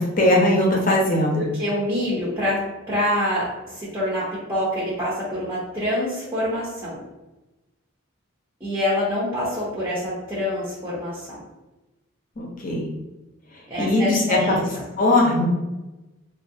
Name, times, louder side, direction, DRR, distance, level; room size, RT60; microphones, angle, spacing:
voice 1, 0.0-1.4 12.4-12.9 13.8-14.6 15.0-15.5, left 1 dB, 40° left, -2 dB, 0.7 m, -19 dB
voice 2, 1.3-2.6 2.9-4.2 4.5-7.0 8.6-11.4 13.7-14.8, left 1 dB, 10° right, -9 dB, 0.6 m, -26 dB
3.1 x 2.3 x 2.7 m, 1.1 s
head